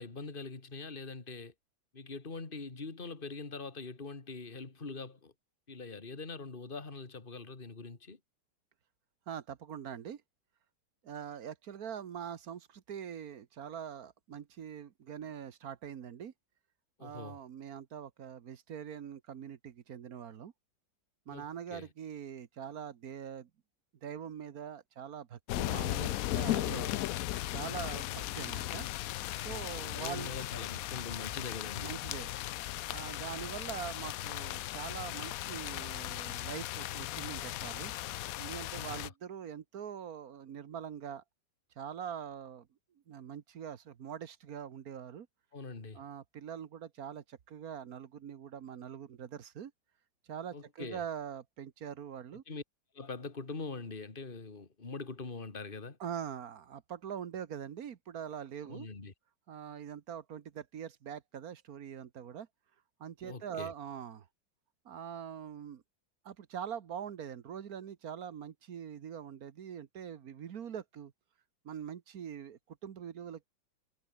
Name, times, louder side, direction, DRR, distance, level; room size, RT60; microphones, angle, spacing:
voice 1, 0.0-1.5 1.9-5.3 5.7-8.2 17.0-17.4 21.3-21.9 26.5-27.0 29.5-31.9 38.8-39.1 45.5-46.0 50.5-51.0 52.5-52.6 52.9-56.0 58.7-59.1 63.2-63.7, left 3 dB, 25° left, 2.7 m, -43 dB
voice 2, 9.3-10.2 11.0-16.3 17.0-20.5 21.3-23.5 24.0-26.9 27.5-28.9 29.3-30.3 31.8-32.3 32.9-37.9 38.4-41.2 41.8-42.7 43.1-45.3 45.9-49.7 50.3-52.4 56.0-58.9 59.5-62.5 63.0-64.3 64.8-65.8 66.2-71.1 71.6-73.5, right 8 dB, 55° right, 1.4 m, -43 dB
sound 1, 25.5-39.1, left 15 dB, 90° left, 0.7 m, -37 dB
omnidirectional pair, 2.1 m